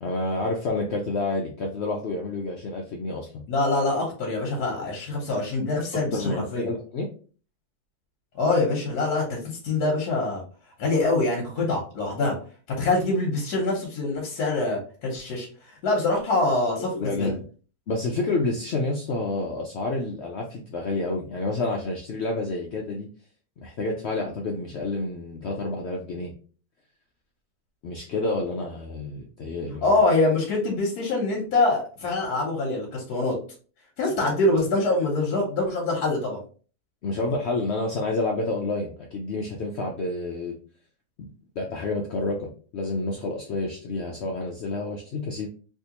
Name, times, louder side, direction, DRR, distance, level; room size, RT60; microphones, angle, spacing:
voice 1, 0.0-3.4 5.9-7.1 16.8-17.4 17.9-23.1 23.6-26.3 27.8-29.9 37.0-40.5 41.2-45.5, left 2 dB, 65° left, 0 dB, 0.7 m, -29 dB
voice 2, 3.5-6.7 8.4-10.4 10.8-12.4 12.7-15.5 15.8-17.3 29.8-33.4 34.0-36.4, left 2 dB, 80° left, -1 dB, 1.4 m, -24 dB
3.5 x 2.6 x 2.8 m, 0.40 s
omnidirectional pair, 1.6 m